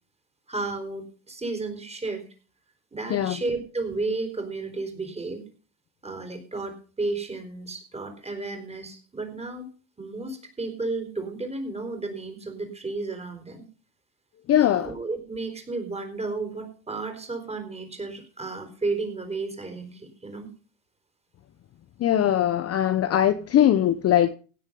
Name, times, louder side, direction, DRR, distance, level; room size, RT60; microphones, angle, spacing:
voice 1, 0.5-2.2 2.9-5.4 6.0-9.7 10.0-13.6 14.7-20.5, right 3 dB, 10° right, 4.3 m, -33 dB
voice 2, 14.5-14.9 22.0-24.3, left 11 dB, 30° left, 0.9 m, -21 dB
17.0 x 8.0 x 5.4 m
supercardioid pair, 115°, 49 cm